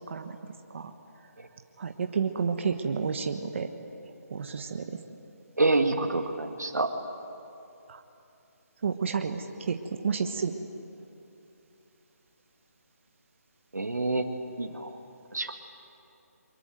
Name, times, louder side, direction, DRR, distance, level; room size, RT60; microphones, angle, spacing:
voice 1, 1.8-3.7 4.3-4.9 7.9-8.0 8.8-9.8 10.0-10.5, right 6 dB, 45° right, 6 dB, 1.3 m, -30 dB
voice 2, 5.6-6.9 13.7-14.2 14.6-14.9 15.3-15.5, right 2 dB, 90° right, 4 dB, 2.0 m, -27 dB
24.0 x 22.0 x 9.3 m, 2.7 s
figure-of-eight pair, 155°, 9 cm